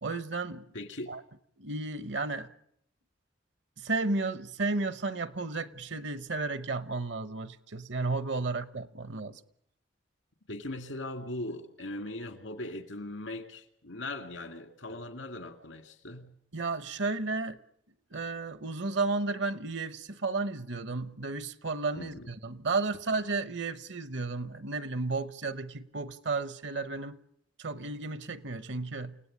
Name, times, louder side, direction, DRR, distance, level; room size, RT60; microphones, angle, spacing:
voice 1, 0.0-0.7 1.1-1.2 1.6-2.5 3.8-9.4 16.5-17.6 18.1-27.2 27.6-29.2, right 3 dB, 70° right, 1.0 m, -33 dB
voice 2, 0.7-1.1 10.5-16.3 22.0-22.3, left 1 dB, 85° left, 2.3 m, -39 dB
28.5 x 17.5 x 8.7 m
head